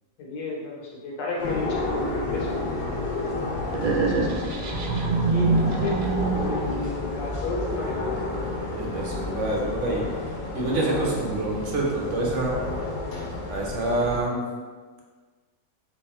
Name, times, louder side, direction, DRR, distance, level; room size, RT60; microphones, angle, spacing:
voice 1, 0.2-3.2 3.5-4.1 5.3-8.2, left 2 dB, 65° left, -3 dB, 1.6 m, -33 dB
sound 1, 1.4-14.2, left 2 dB, 85° left, 0.4 m, -31 dB
sound 2, 3.7-6.8, right 3 dB, 70° right, 1.2 m, -25 dB
voice 2, 8.7-12.6 13.5-14.4, right 2 dB, 55° right, -2 dB, 0.9 m, -27 dB
3.5 x 3.4 x 4.3 m, 1.4 s
omnidirectional pair, 2.1 m